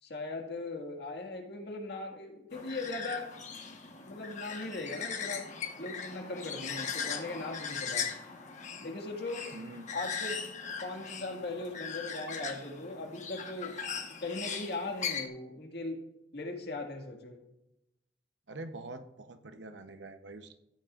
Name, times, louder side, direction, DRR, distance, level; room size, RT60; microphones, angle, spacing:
voice 1, 0.0-3.3 4.0-5.5 5.8-8.1 8.8-9.5 9.9-10.4 10.8-13.8 14.2-16.0 16.3-17.4, left 2 dB, 65° left, 2 dB, 1.9 m, -39 dB
sound 1, 2.5-15.3, left 6 dB, 45° left, 1.2 m, -39 dB
voice 2, 9.5-9.9 18.5-20.6, right 2 dB, 75° right, 8 dB, 0.9 m, -45 dB
14.0 x 9.9 x 2.5 m, 0.87 s
head